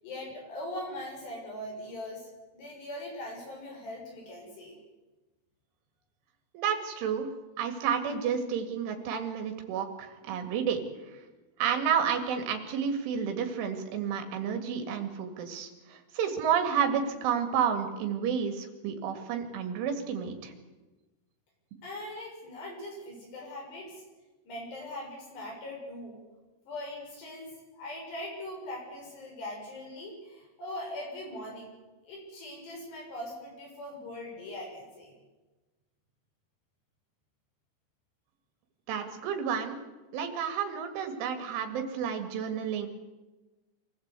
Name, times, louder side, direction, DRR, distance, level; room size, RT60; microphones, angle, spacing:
voice 1, 0.0-4.8 21.8-24.0 24.4-26.2 26.7-31.7 32.0-35.1, left 1 dB, 60° left, -1 dB, 8.5 m, -41 dB
voice 2, 6.5-10.8 11.6-20.5 38.9-39.8 40.1-42.9, right 7 dB, 75° right, 5 dB, 4.6 m, -31 dB
25.0 x 15.5 x 8.3 m, 1.2 s
omnidirectional pair, 5.7 m